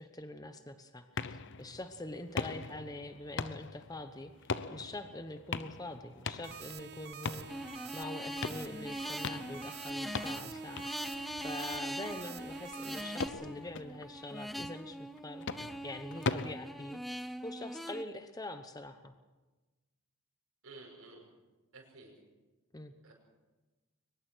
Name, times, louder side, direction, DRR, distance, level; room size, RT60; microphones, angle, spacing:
voice 1, 0.0-4.3 4.7-7.5 7.9-19.1 22.7-22.9, left 2 dB, 15° left, 8 dB, 1.0 m, -44 dB
sound 1, 1.2-16.5, left 4 dB, 55° left, 0.8 m, -42 dB
sound 2, 6.4-13.3, right 8 dB, 50° right, 0.8 m, -48 dB
sound 3, 7.5-18.0, equal, ahead, 0.6 m, -42 dB
voice 2, 20.6-21.3 21.7-22.1 23.0-23.1, right 3 dB, 70° right, -4 dB, 5.6 m, -52 dB
22.5 x 20.5 x 6.3 m, 1.2 s
head